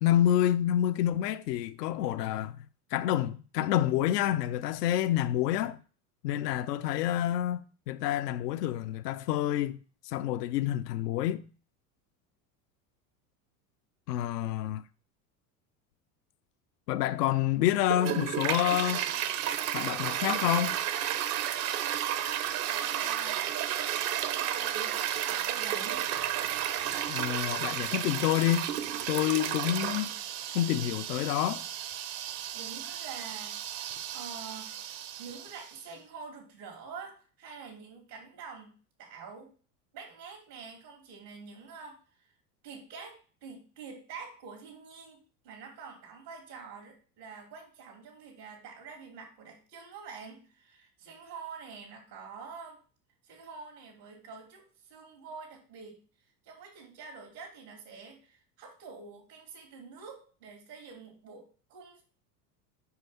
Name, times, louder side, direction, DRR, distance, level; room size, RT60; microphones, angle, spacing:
voice 1, 0.0-2.6 2.9-5.8 6.2-11.4 14.1-14.8 16.9-19.0 19.7-20.8 27.1-28.7 29.1-30.1 30.5-31.6, left 12 dB, 85° left, 0.6 m, -28 dB
Toilet flush, 17.8-35.8, right 11 dB, 70° right, 1.1 m, -33 dB
voice 2, 22.1-23.4 24.3-26.1 32.5-33.9 34.1-34.7 35.2-38.7 39.0-39.5 39.9-42.0 42.6-43.1 43.4-52.8 53.2-56.0 56.4-62.0, right 5 dB, 85° right, 2.8 m, -46 dB
5.8 x 5.3 x 5.6 m
hypercardioid pair, 90°, 47 cm